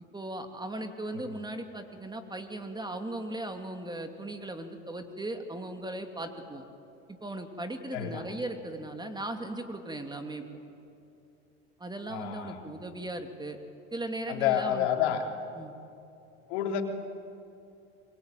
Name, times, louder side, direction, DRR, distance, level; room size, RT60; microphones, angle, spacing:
voice 1, 0.1-6.7 7.2-10.4 11.8-13.6 13.9-14.9 15.6-15.7, right 1 dB, 10° right, 6 dB, 2.7 m, -37 dB
voice 2, 7.9-8.3 12.1-12.6 14.3-15.2 16.5-16.8, left 10 dB, 75° left, 3 dB, 3.5 m, -29 dB
28.0 x 22.5 x 9.3 m, 2.7 s
hypercardioid pair, 95°, 34 cm